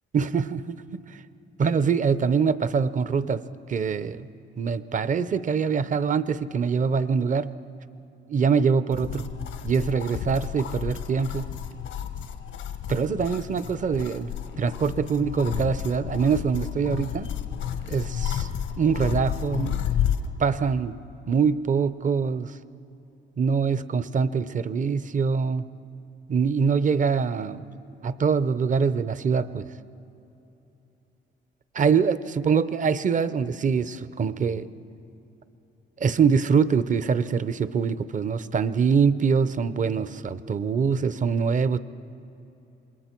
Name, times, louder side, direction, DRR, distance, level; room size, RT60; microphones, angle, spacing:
voice 1, 0.1-1.2 1.6-3.4 3.7-4.3 4.6-7.5 8.3-9.3 9.6-11.5 12.9-14.3 14.6-17.3 17.9-18.5 18.8-19.8 20.4-21.0 21.3-22.6 23.4-25.6 26.3-27.8 28.0-29.7 31.7-34.7 36.0-41.8, right 6 dB, 40° right, 15 dB, 0.7 m, -24 dB
sound 1, 8.9-20.3, left 9 dB, 90° left, 1.1 m, -31 dB
27.0 x 21.5 x 4.5 m, 3.0 s
cardioid pair, 90°, 20 cm